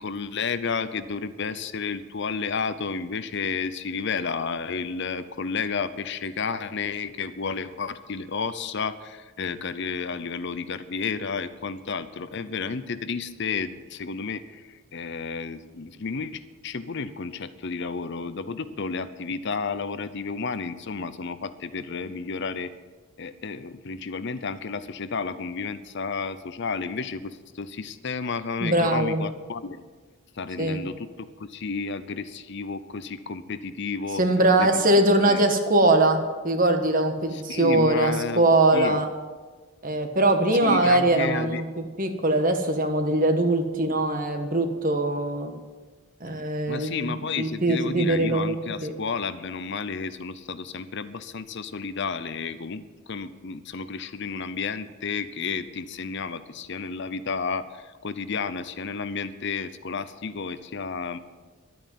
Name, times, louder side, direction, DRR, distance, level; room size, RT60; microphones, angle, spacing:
voice 1, 0.0-22.7 23.2-29.8 30.4-34.2 34.6-34.8 35.3-35.4 37.3-38.4 38.7-39.0 40.6-41.6 46.7-61.2, left 5 dB, 55° left, 13 dB, 0.7 m, -32 dB
voice 2, 28.6-29.2 30.6-30.8 34.2-39.1 39.8-45.5 46.2-47.1 47.4-48.5 48.8-48.9, right 2 dB, 40° right, 5 dB, 1.5 m, -22 dB
12.0 x 9.1 x 9.4 m, 1.4 s
head